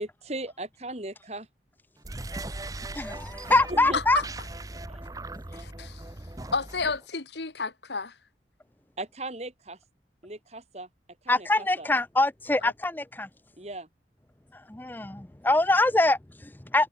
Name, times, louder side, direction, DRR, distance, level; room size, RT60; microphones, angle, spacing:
voice 1, 0.0-1.5 3.7-4.0 4.9-5.0 9.0-9.8 10.2-10.9 11.2-11.9 13.6-13.9, right 1 dB, 35° right, 2.8 m, -37 dB
sound 1, 2.0-7.0, right 2 dB, 20° right, 1.0 m, -39 dB
voice 2, 3.0-4.2 11.3-13.3 14.5-16.9, left 2 dB, 10° left, 0.5 m, -24 dB
voice 3, 3.9-4.2 5.5-6.0 6.5-8.2 12.6-12.7, left 4 dB, 75° left, 1.7 m, -31 dB
head